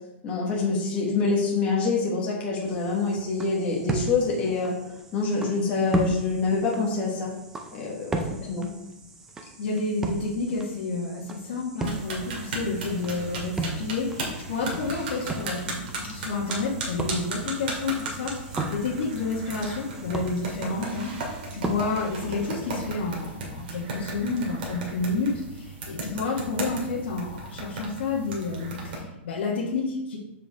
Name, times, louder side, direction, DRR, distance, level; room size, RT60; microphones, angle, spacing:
voice 1, 0.2-7.3 7.7-8.7, left 4 dB, 20° left, -4 dB, 1.3 m, -26 dB
sound 1, 2.7-22.5, right 3 dB, 5° right, 0.5 m, -36 dB
voice 2, 9.6-30.2, left 3 dB, 60° left, -4 dB, 1.5 m, -30 dB
sound 2, 11.8-29.0, right 2 dB, 50° right, 2.2 m, -36 dB
7.5 x 6.8 x 3.5 m, 0.91 s
supercardioid pair, 175°, 7 cm